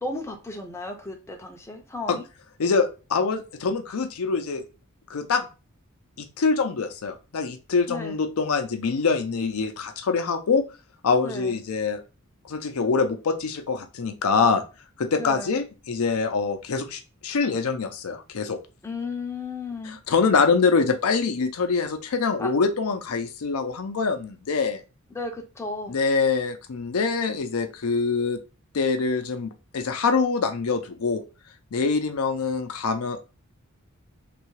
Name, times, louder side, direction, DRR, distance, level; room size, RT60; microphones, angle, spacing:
voice 1, 0.0-2.2 7.9-8.2 11.2-11.6 15.2-15.5 18.8-20.0 22.4-22.5 25.1-26.0, left 3 dB, 10° left, 2 dB, 0.5 m, -34 dB
voice 2, 2.6-4.6 5.1-5.5 6.2-10.6 11.0-12.0 12.5-14.6 15.0-18.6 19.8-24.8 25.9-28.4 28.7-31.2 31.7-33.2, left 4 dB, 75° left, 6 dB, 0.5 m, -24 dB
3.3 x 2.3 x 3.1 m, 0.31 s
head